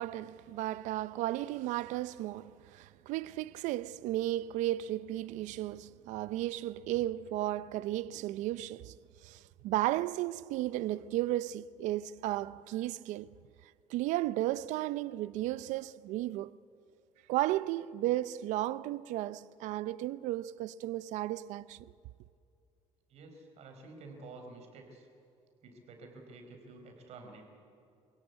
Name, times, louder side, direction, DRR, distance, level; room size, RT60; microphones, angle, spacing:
voice 1, 0.0-9.0 9.2-13.3 13.9-16.6 17.3-21.9, right 15 dB, 80° right, 0.6 m, -34 dB
voice 2, 23.1-25.1 25.6-27.5, right 3 dB, 60° right, 5.0 m, -50 dB
27.0 x 17.0 x 8.4 m
cardioid pair, 115°, 12 cm